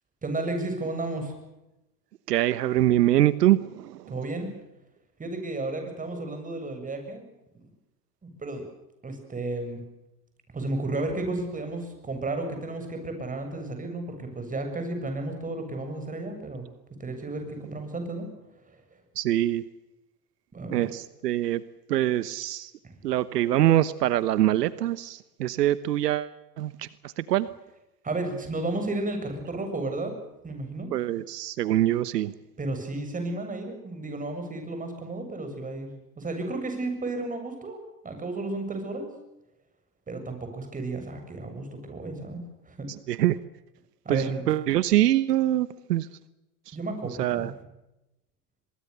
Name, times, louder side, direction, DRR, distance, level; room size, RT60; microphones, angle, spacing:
voice 1, 0.2-1.3 4.1-4.5 5.2-7.2 7.6-7.7 8.2-8.6 9.0-9.8 10.5-16.7 17.0-18.3 18.6-19.0 20.5-20.9 22.8-23.0 28.0-30.1 30.4-30.9 32.6-39.1 40.1-42.9 44.0-44.4 46.7-47.5, right 2 dB, 15° right, 5 dB, 7.7 m, -33 dB
voice 2, 2.3-4.0 19.2-19.6 20.7-21.6 21.9-22.7 23.0-26.9 27.2-27.5 30.9-32.3 43.1-43.4 44.1-46.1 46.7-46.8 47.2-47.5, right 13 dB, 85° right, 16 dB, 1.2 m, -24 dB
24.0 x 22.5 x 6.9 m, 0.92 s
hypercardioid pair, 110°, 47 cm